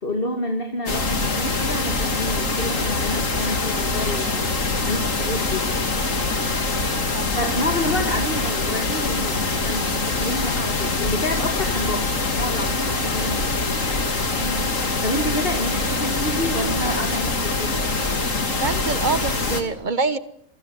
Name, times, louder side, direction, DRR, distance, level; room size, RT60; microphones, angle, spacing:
voice 1, 0.0-4.4 4.8-5.7 7.4-13.5 15.0-17.7, left 1 dB, 40° left, 5 dB, 2.8 m, -28 dB
sound 1, 0.9-19.6, left 3 dB, 60° left, 3.2 m, -24 dB
voice 2, 14.3-14.7 18.6-20.2, right 4 dB, 35° right, 14 dB, 1.4 m, -26 dB
28.0 x 24.0 x 8.5 m, 0.67 s
omnidirectional pair, 1.5 m